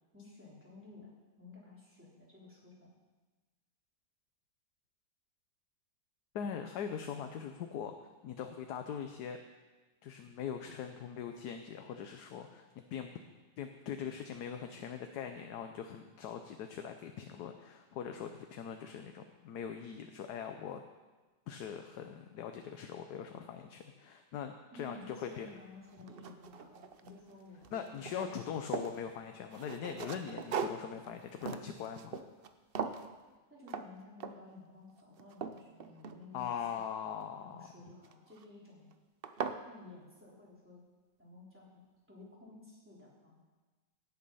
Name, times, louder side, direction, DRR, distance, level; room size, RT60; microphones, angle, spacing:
voice 1, 0.1-2.9 24.7-28.1 33.5-36.8 37.4-38.9 39.7-40.8 41.2-41.8 42.1-43.4, left 3 dB, 5° right, -6 dB, 3.7 m, -54 dB
voice 2, 6.3-7.9 8.2-9.4 10.0-13.1 13.6-20.8 21.5-25.5 27.7-32.2 36.3-37.7, left 8 dB, 70° left, 6 dB, 1.3 m, -41 dB
sound 1, 25.3-25.4 25.9-27.3 27.6-29.0 29.5-32.5 32.8-33.1 33.7-33.9 34.2-34.6 35.0-36.6 38.0-38.4 38.9-39.0 39.2-39.6, right 6 dB, 85° right, 0.5 m, -40 dB
17.0 x 8.6 x 5.5 m, 1.2 s
omnidirectional pair, 1.9 m